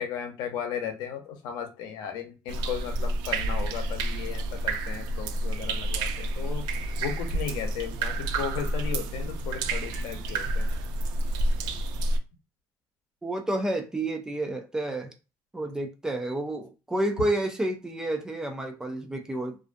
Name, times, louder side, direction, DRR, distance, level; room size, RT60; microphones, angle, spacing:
voice 1, 0.0-6.7 7.0-10.7, left 8 dB, 80° left, 0.7 m, -35 dB
sound 1, 2.5-12.2, right 2 dB, 80° right, 0.4 m, -29 dB
voice 2, 13.2-15.1 15.5-19.6, right 1 dB, 10° right, 0.3 m, -30 dB
2.4 x 2.2 x 2.5 m
cardioid pair, 165°, 7 cm